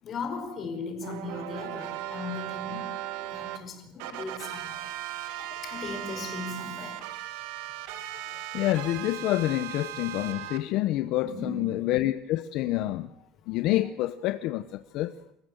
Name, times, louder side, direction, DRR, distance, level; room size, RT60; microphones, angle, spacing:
voice 1, 0.0-2.9 3.2-5.0 5.6-7.1 11.2-11.8, left 3 dB, 35° left, 5.0 m, -37 dB
sound 1, 1.0-3.6 4.0-10.6, right 12 dB, 85° right, 2.1 m, -37 dB
voice 2, 8.5-13.1 13.5-15.1, left 15 dB, 60° left, 0.9 m, -28 dB
28.0 x 14.5 x 7.9 m
cardioid pair, 150°, 0 cm